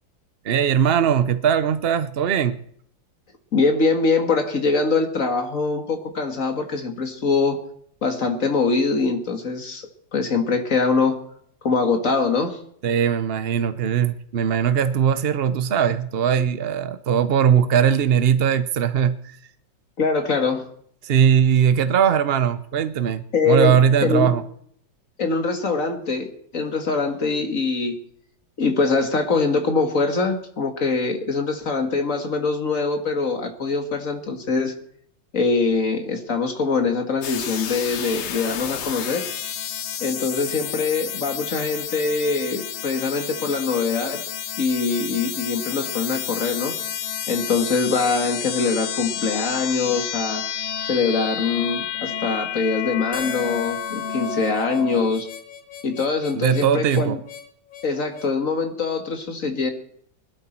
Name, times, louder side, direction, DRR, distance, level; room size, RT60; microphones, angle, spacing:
voice 1, 0.4-2.6 12.8-19.2 21.0-24.4 56.3-57.2, right 8 dB, 60° right, 12 dB, 0.6 m, -20 dB
voice 2, 3.5-7.6 8.0-11.2 11.6-12.6 20.0-20.6 23.3-24.3 25.2-27.9 28.6-34.8 35.3-39.2 40.0-44.2 44.6-46.7 47.3-50.4 50.9-55.3 55.8-57.2 57.8-59.7, left 4 dB, 45° left, 5 dB, 2.2 m, -23 dB
sound 1, 37.2-55.1, left 8 dB, 60° left, 0.7 m, -30 dB
Harmonica, 53.1-58.3, left 7 dB, 80° left, 2.1 m, -39 dB
21.0 x 12.5 x 4.4 m, 0.65 s
omnidirectional pair, 2.0 m